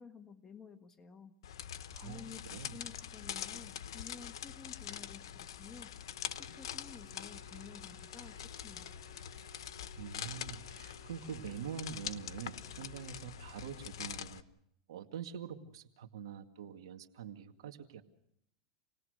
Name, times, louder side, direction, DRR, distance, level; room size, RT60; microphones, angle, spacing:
voice 1, 0.0-1.3 1.9-5.9 6.4-9.0, left 5 dB, 15° left, 6 dB, 1.4 m, -52 dB
sound 1, 1.4-14.4, left 10 dB, 90° left, 0.9 m, -44 dB
voice 2, 1.9-2.8 10.0-14.4 14.9-18.0, right 8 dB, 85° right, 7 dB, 2.0 m, -45 dB
sound 2, 6.0-13.3, right 8 dB, 20° right, 4.0 m, -62 dB
28.0 x 19.5 x 6.5 m, 0.76 s
supercardioid pair, 145°, 2 cm